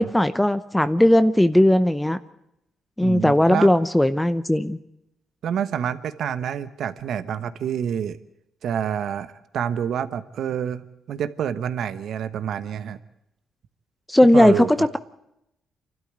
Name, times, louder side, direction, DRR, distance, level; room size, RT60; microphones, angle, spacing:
voice 1, 0.0-2.2 3.0-4.8 14.1-15.0, left 1 dB, 5° left, 12 dB, 0.8 m, -17 dB
voice 2, 3.0-3.7 5.4-8.2 8.6-10.8 11.1-13.0 14.3-14.7, right 8 dB, 70° right, 11 dB, 1.1 m, -27 dB
27.5 x 12.5 x 9.6 m, 0.84 s
cardioid pair, 90°, 0 cm